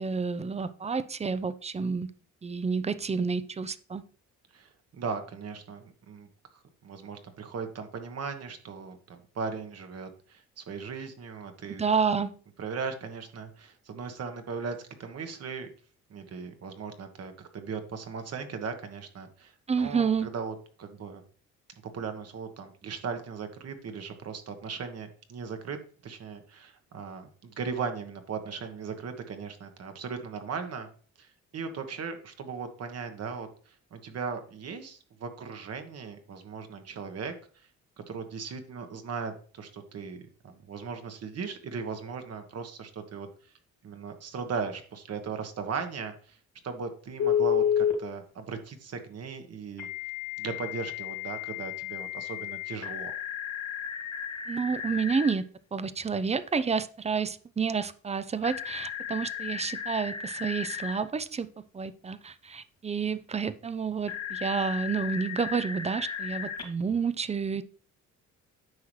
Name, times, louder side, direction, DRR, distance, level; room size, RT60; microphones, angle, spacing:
voice 1, 0.0-2.1 2.4-4.0 11.7-12.3 19.7-20.3 54.5-55.4 55.7-61.5 61.7-67.6, right 5 dB, 20° right, 14 dB, 0.6 m, -29 dB
voice 2, 4.5-6.3 6.8-11.8 12.6-15.7 16.1-19.5 19.8-21.2 21.9-25.8 26.0-30.9 31.2-37.3 38.0-43.3 43.8-46.4 46.6-49.9 50.4-53.1, right 5 dB, 55° right, 7 dB, 1.4 m, -38 dB
Telephone, 47.2-47.9 49.8-55.3 58.4-61.0 64.1-66.6, left 8 dB, 65° left, 2.7 m, -32 dB
9.5 x 5.9 x 3.2 m, 0.42 s
cardioid pair, 90°, 30 cm